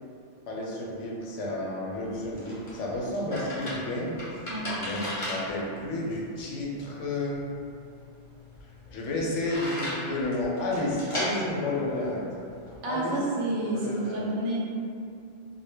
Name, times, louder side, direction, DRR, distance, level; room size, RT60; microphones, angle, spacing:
voice 1, 0.5-4.2 4.8-7.4 8.9-12.3 12.9-13.1 13.7-14.3, left 2 dB, 90° left, -3 dB, 0.9 m, -31 dB
sound 1, 1.9-12.8, equal, 35° left, 0.6 m, -37 dB
voice 2, 12.8-14.6, right 1 dB, 85° right, -4 dB, 0.9 m, -29 dB
2.1 x 2.0 x 3.4 m, 2.5 s
omnidirectional pair, 1.2 m